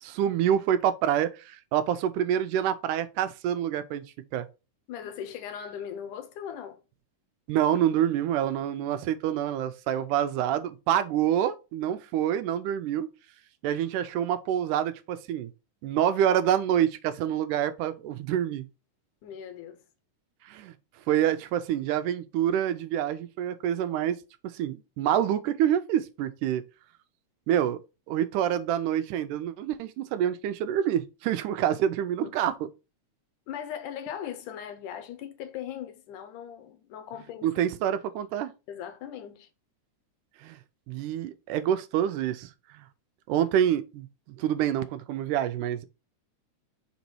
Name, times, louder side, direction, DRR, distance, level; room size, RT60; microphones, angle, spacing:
voice 1, 0.0-4.0 4.3-4.5 7.5-13.1 13.6-15.5 15.8-18.7 20.5-20.7 21.1-24.2 24.4-26.6 27.5-27.8 28.1-32.5 37.4-38.5 40.4-40.6 40.9-42.9 43.3-45.9, right 10 dB, 90° right, 2.2 m, -27 dB
voice 2, 4.9-6.8 19.2-19.8 32.2-32.4 33.5-37.5 38.7-39.5, left 9 dB, 80° left, 2.5 m, -39 dB
5.3 x 4.0 x 4.5 m
omnidirectional pair, 3.6 m